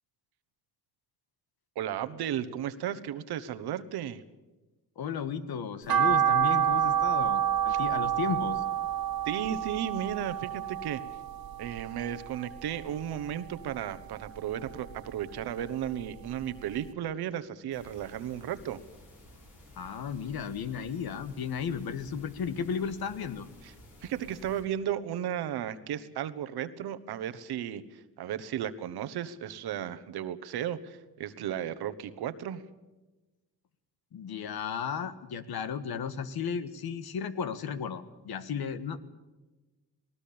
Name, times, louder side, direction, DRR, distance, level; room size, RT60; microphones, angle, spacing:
voice 1, 1.7-4.2 7.7-7.8 9.2-11.0 11.6-18.8 23.6-23.7 24.0-32.6, right 10 dB, 90° right, 12 dB, 1.2 m, -34 dB
voice 2, 5.0-8.6 19.8-23.5 34.1-39.0, left 6 dB, 75° left, 12 dB, 1.6 m, -34 dB
sound 1, 5.9-12.2 12.6-13.7 14.1-15.5 15.9-16.0 16.4-16.5 16.8-16.9, right 9 dB, 70° right, 1.8 m, -28 dB
sound 2, 17.7-24.6, left 1 dB, 55° left, 7.7 m, -53 dB
19.5 x 19.0 x 8.6 m, 1.1 s
cardioid pair, 80°, 37 cm